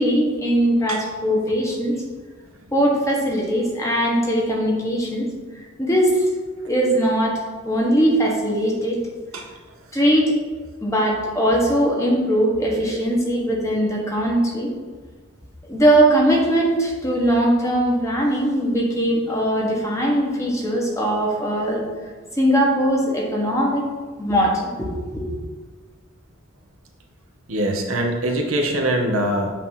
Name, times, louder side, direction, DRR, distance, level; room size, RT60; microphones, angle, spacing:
voice 1, 0.0-1.9 2.7-5.3 5.8-6.2 6.7-9.0 9.9-10.3 10.8-14.7 15.7-21.8 22.3-23.9 24.2-25.2, right 1 dB, 15° left, -2 dB, 1.2 m, -20 dB
voice 2, 27.5-29.5, right 1 dB, 70° right, 2 dB, 1.0 m, -22 dB
8.4 x 2.8 x 5.6 m, 1.4 s
head